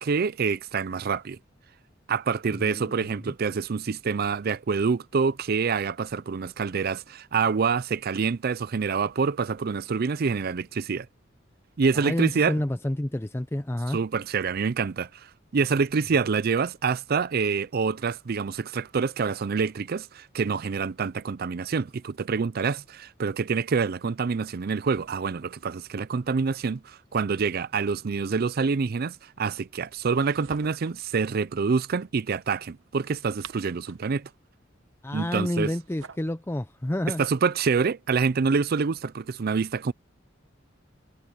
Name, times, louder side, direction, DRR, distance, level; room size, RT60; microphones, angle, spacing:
voice 1, 0.0-1.4 2.1-11.1 11.8-12.6 13.9-34.3 35.1-35.7 37.2-39.9, right 5 dB, 50° right, 0.5 m, -26 dB
voice 2, 2.6-3.3 11.9-14.0 35.0-37.2, left 1 dB, 10° left, 0.6 m, -29 dB
sound 1, 30.0-31.1 33.0-34.2 35.4-36.3, right 6 dB, 90° right, 1.0 m, -47 dB
head